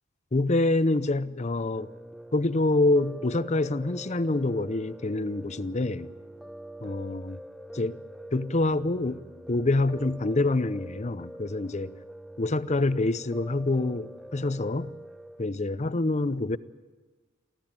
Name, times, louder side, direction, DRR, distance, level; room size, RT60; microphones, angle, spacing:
voice 1, 0.3-1.9 2.3-6.1 6.8-7.4 7.7-8.0 8.3-9.2 9.5-11.9 12.4-14.9 15.4-16.6, left 2 dB, 35° left, 0.7 m, -26 dB
Piano, 1.7-15.4, right 1 dB, ahead, 0.6 m, -45 dB
24.5 x 15.0 x 8.8 m
head